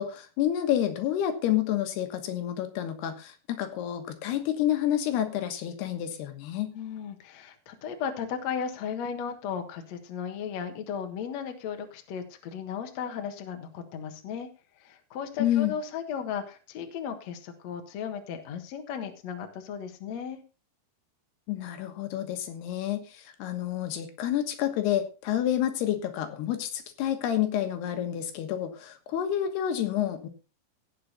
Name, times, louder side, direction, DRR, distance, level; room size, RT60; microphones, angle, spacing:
voice 1, 0.0-6.7 15.4-15.7 21.5-30.3, left 11 dB, 80° left, 7 dB, 3.4 m, -29 dB
voice 2, 6.7-14.5 14.8-20.4, left 7 dB, 55° left, 6 dB, 2.1 m, -35 dB
17.0 x 6.8 x 3.9 m, 0.32 s
omnidirectional pair, 4.7 m